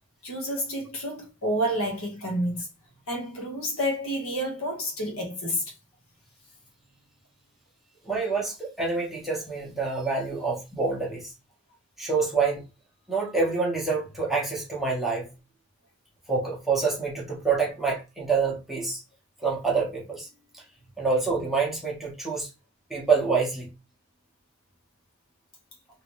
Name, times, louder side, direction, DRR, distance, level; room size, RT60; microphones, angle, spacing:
voice 1, 0.2-2.7 3.1-5.7, equal, 75° left, 1.4 m, -29 dB
voice 2, 8.0-11.3 12.0-12.6 13.1-15.3 16.3-19.0 19.4-20.3 20.5-20.6 21.0-22.5 22.9-23.7, right 4 dB, ahead, 1.1 m, -27 dB
3.1 x 3.0 x 3.1 m
head